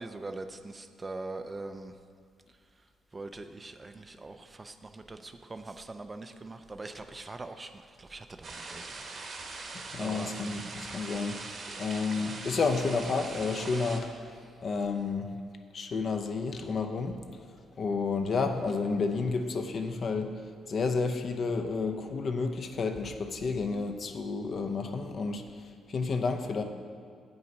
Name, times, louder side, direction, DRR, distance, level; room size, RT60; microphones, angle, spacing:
voice 1, 0.0-1.9 3.1-10.7 12.1-12.3, right 2 dB, 25° right, 8 dB, 0.4 m, -43 dB
sound 1, 8.4-14.0, right 3 dB, 50° right, 1.0 m, -41 dB
voice 2, 9.9-11.4 11.8-14.1 14.6-15.3 15.7-17.2 17.8-20.3 20.7-25.4 25.9-26.6, left 4 dB, 50° left, 6 dB, 0.6 m, -30 dB
7.9 x 5.6 x 5.3 m, 2.2 s
cardioid pair, 90°, 0 cm